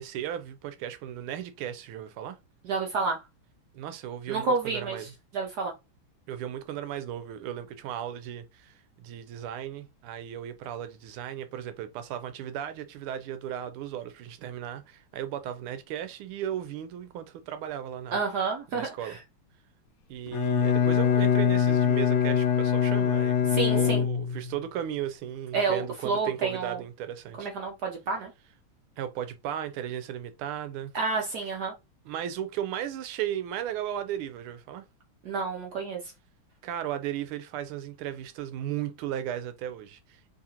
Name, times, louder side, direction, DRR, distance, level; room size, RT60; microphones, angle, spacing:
voice 1, 0.0-2.4 3.7-5.1 6.3-18.2 18.7-19.2 20.1-27.5 29.0-30.9 32.1-34.8 36.6-40.3, right 10 dB, 90° right, 1.5 m, -36 dB
voice 2, 2.6-3.2 4.3-5.1 5.3-5.7 18.1-19.2 23.5-24.1 25.5-26.8 27.4-28.3 30.9-31.7 35.2-36.0, right 4 dB, 65° right, 1.0 m, -29 dB
Bowed string instrument, 20.3-24.5, left 8 dB, 70° left, 1.2 m, -23 dB
3.8 x 2.7 x 2.8 m
omnidirectional pair, 2.3 m